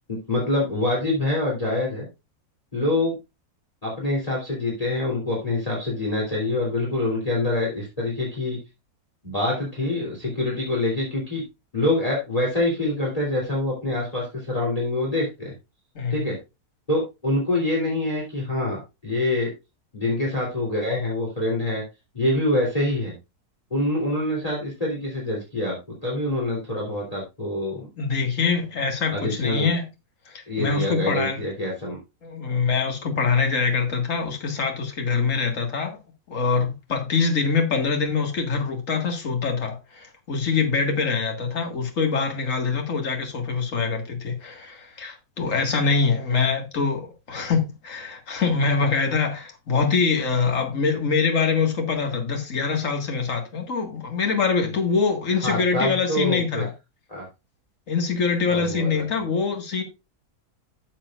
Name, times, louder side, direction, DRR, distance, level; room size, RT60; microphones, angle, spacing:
voice 1, 0.1-2.1 2.7-3.2 3.8-8.6 9.2-11.4 11.7-15.5 16.1-16.4 16.9-19.5 19.9-21.8 22.1-23.1 23.7-27.9 29.1-29.7 30.5-32.0 32.4-32.6 55.4-56.7 57.1-57.3 58.5-59.1, left 1 dB, 20° left, 3.3 m, -25 dB
voice 2, 28.0-29.8 30.3-31.4 32.2-36.0 36.3-56.7 57.9-59.8, left 5 dB, 55° left, 2.3 m, -24 dB
12.5 x 7.4 x 2.5 m
omnidirectional pair, 1.7 m